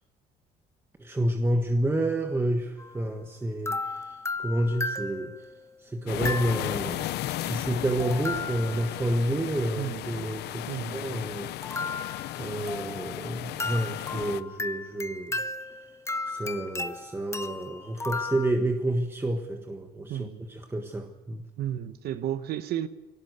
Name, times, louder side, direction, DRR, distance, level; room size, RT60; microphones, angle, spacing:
voice 1, 1.0-5.3 5.8-7.0 7.4-11.5 12.4-15.4 16.3-21.4, right 1 dB, 15° right, 4 dB, 1.5 m, -29 dB
sound 1, 2.8-3.0 3.7-5.6 6.3-6.9 8.0-9.0 11.6-13.2 13.6-18.5, left 3 dB, 15° left, 1.0 m, -35 dB
sound 2, 6.1-14.4, left 14 dB, 80° left, 0.8 m, -35 dB
voice 2, 9.8-10.3 10.7-11.2 20.1-20.5 21.6-22.9, right 11 dB, 70° right, 12 dB, 1.1 m, -33 dB
19.5 x 18.0 x 8.2 m, 1.0 s
cardioid pair, 110°, 17 cm